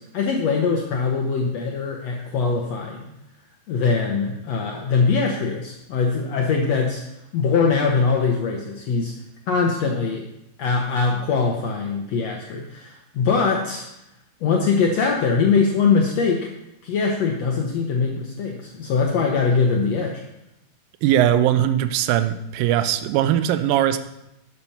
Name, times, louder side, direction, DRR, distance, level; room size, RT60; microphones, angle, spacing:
voice 1, 0.0-3.1 3.7-7.0 7.3-9.1 9.5-10.2 10.6-13.9 14.4-16.5 16.8-20.2, left 5 dB, 80° left, 0 dB, 1.5 m, -22 dB
voice 2, 21.0-24.0, right 11 dB, 80° right, 10 dB, 2.2 m, -20 dB
12.0 x 6.0 x 5.7 m, 0.87 s
omnidirectional pair, 4.4 m